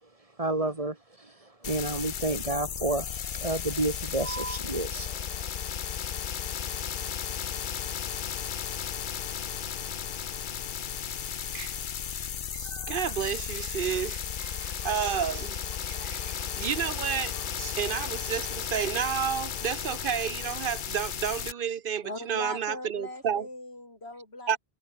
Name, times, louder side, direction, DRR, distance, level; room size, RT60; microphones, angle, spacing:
voice 1, 0.4-1.0 1.6-5.5, right 2 dB, 35° right, 1.9 m, -30 dB
sound 1, 1.6-21.5, left 8 dB, 55° left, 0.8 m, -34 dB
voice 2, 12.5-23.5 24.5-24.6, right 8 dB, 60° right, 0.8 m, -31 dB
voice 3, 22.0-24.6, left 2 dB, 85° left, 5.6 m, -40 dB
omnidirectional pair, 1.1 m